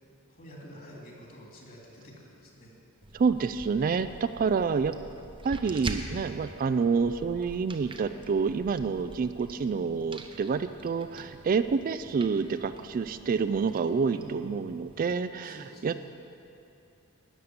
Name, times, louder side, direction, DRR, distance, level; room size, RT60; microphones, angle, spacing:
voice 1, 0.3-2.7 14.1-14.8 15.4-16.1, equal, 40° left, -3 dB, 2.8 m, -48 dB
sound 1, 3.0-15.2, right 2 dB, 25° right, 0.7 m, -45 dB
voice 2, 3.1-4.9 5.4-16.1, right 5 dB, 40° right, 11 dB, 0.3 m, -28 dB
12.5 x 6.7 x 9.5 m, 2.8 s
head